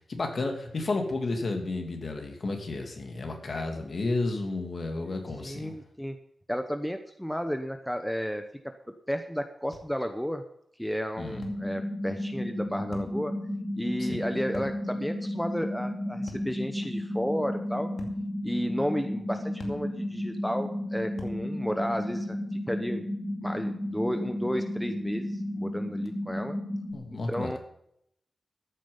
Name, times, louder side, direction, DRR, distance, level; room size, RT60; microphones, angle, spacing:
voice 1, 0.0-5.8 11.2-11.4 14.0-14.2 26.9-27.6, left 2 dB, 50° left, 3 dB, 2.8 m, -32 dB
voice 2, 5.4-6.2 6.5-8.4 9.1-10.4 10.8-13.3 13.8-17.9 18.4-22.4 22.7-23.0 23.4-26.6 27.3-27.6, equal, 5° left, 7 dB, 0.9 m, -32 dB
sound 1, 9.7-9.9 11.4-11.7 12.9-13.2 14.5-14.8 16.3-16.5 18.0-18.2 19.6-19.9 21.2-21.4, left 2 dB, 80° left, 2.4 m, -43 dB
sound 2, 11.4-26.9, left 1 dB, 15° right, 3.3 m, -33 dB
14.5 x 9.2 x 5.5 m, 0.74 s
wide cardioid pair, 140°, 0 cm